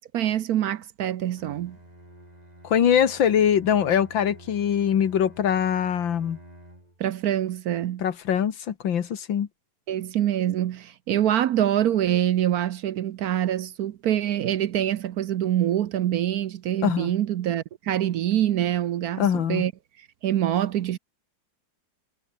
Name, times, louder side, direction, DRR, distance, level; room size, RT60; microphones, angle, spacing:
voice 1, 0.0-1.8 7.0-8.0 9.9-19.7 20.2-21.0, right 11 dB, 65° right, 1.0 m, -25 dB
Bowed string instrument, 1.4-7.0, right 1 dB, 20° right, 6.0 m, -49 dB
voice 2, 2.6-6.4 8.0-9.5 16.8-17.1 19.2-19.7, left 8 dB, 85° left, 2.2 m, -23 dB
omnidirectional pair, 2.0 m